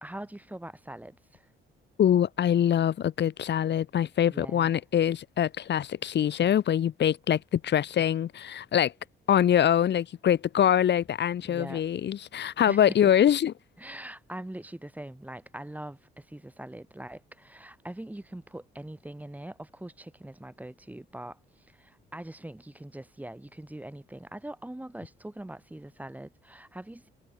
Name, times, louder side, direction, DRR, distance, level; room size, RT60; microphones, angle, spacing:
voice 1, 0.0-1.5 4.3-4.8 11.4-11.8 12.7-13.1 13.8-27.1, right 1 dB, 10° right, 2.9 m, -42 dB
voice 2, 2.0-8.9 9.3-13.5, left 10 dB, 60° left, 2.1 m, -24 dB
cardioid pair, 90°, 20 cm